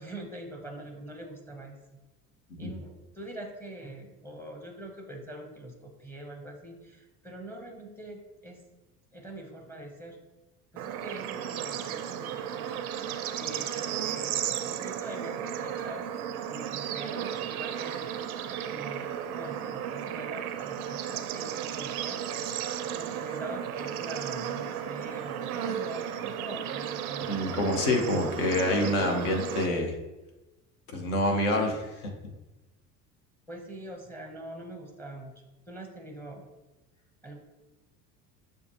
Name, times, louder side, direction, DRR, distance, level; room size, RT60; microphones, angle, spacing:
voice 1, 0.0-1.8 2.6-8.6 9.1-10.2 10.7-13.1 13.3-16.0 16.5-18.4 18.7-22.5 22.8-27.8 33.5-35.3 35.7-36.5 37.2-37.4, right 1 dB, 5° left, 2 dB, 0.6 m, -44 dB
Bird / Insect / Frog, 10.8-29.7, right 9 dB, 70° right, 0.5 m, -34 dB
voice 2, 27.3-29.9 30.9-32.1, left 1 dB, 70° left, 2 dB, 1.0 m, -27 dB
6.7 x 2.2 x 2.9 m, 1.0 s
figure-of-eight pair, 70°, 46 cm